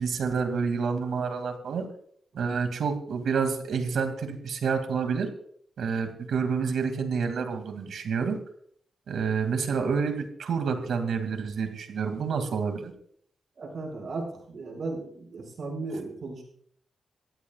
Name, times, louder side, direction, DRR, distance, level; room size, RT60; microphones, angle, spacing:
voice 1, 0.0-1.9 2.4-5.3 5.8-8.4 9.1-12.9, right 5 dB, 85° right, 6 dB, 2.5 m, -28 dB
voice 2, 13.6-16.4, right 3 dB, 50° right, 0 dB, 5.6 m, -36 dB
26.5 x 15.5 x 2.4 m, 0.62 s
wide cardioid pair, 175°, 0 cm